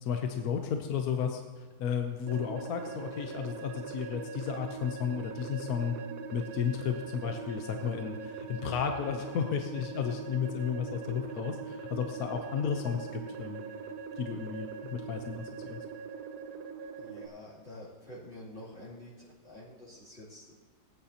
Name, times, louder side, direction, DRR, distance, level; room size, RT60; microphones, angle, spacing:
voice 1, 0.0-6.0 6.3-13.7 14.2-15.8, left 7 dB, 75° left, 5 dB, 1.2 m, -33 dB
sound 1, 2.3-17.3, right 5 dB, 85° right, 1.3 m, -42 dB
voice 2, 17.0-20.5, left 1 dB, 45° left, -12 dB, 3.3 m, -48 dB
18.5 x 9.4 x 2.8 m, 1.5 s
omnidirectional pair, 1.6 m